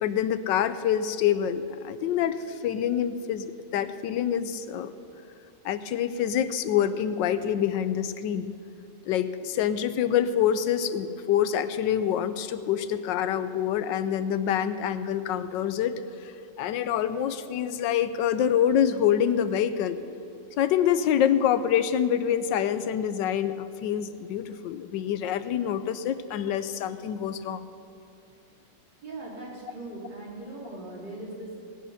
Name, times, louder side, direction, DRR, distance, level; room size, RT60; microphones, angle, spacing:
voice 1, 0.0-3.5 3.7-4.9 5.6-8.5 9.1-15.9 16.2-20.0 20.6-27.6, left 9 dB, 90° left, 12 dB, 1.3 m, -26 dB
voice 2, 29.0-31.6, right 2 dB, 90° right, -7 dB, 4.3 m, -39 dB
17.5 x 8.4 x 5.7 m, 2.6 s
omnidirectional pair, 1.9 m